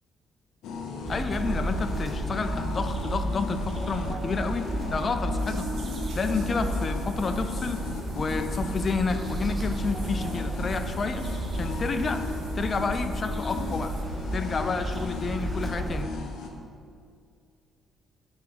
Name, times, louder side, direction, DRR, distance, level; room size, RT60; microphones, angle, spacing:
sound 1, 0.6-16.5, left 4 dB, 85° left, 0.6 m, -37 dB
voice 1, 1.1-5.7 6.1-7.8 8.1-12.2 12.6-13.9 14.3-16.1, left 4 dB, 40° left, 8 dB, 0.4 m, -30 dB
sound 2, 1.1-16.0, right 1 dB, 25° right, 0.5 m, -32 dB
sound 3, 5.4-14.0, right 4 dB, 80° right, 0.9 m, -50 dB
9.1 x 3.4 x 3.3 m, 2.3 s
cardioid pair, 90°, 0 cm